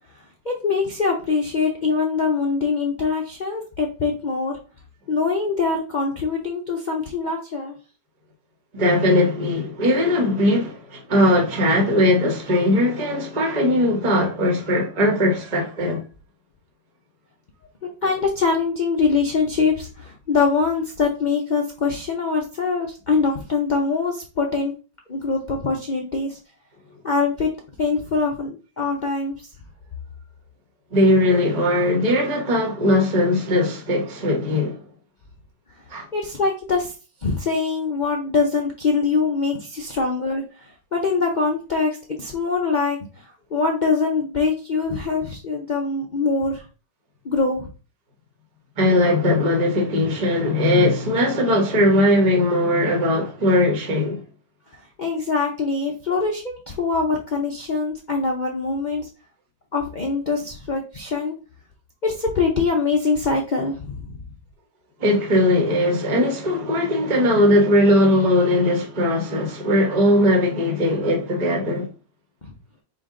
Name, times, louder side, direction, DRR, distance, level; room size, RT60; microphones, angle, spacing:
voice 1, 0.4-4.6 5.1-7.7 17.8-24.7 25.1-26.4 27.0-27.5 27.8-29.3 36.1-36.9 37.2-46.6 47.2-47.7 54.7-59.1 59.7-61.3 62.0-64.2 72.5-72.6, left 4 dB, 80° left, 0.4 m, -23 dB
voice 2, 8.7-16.0 30.9-34.8 35.9-36.1 48.8-54.2 65.0-71.9, left 1 dB, 25° right, 1.1 m, -19 dB
5.0 x 2.6 x 3.7 m
omnidirectional pair, 1.9 m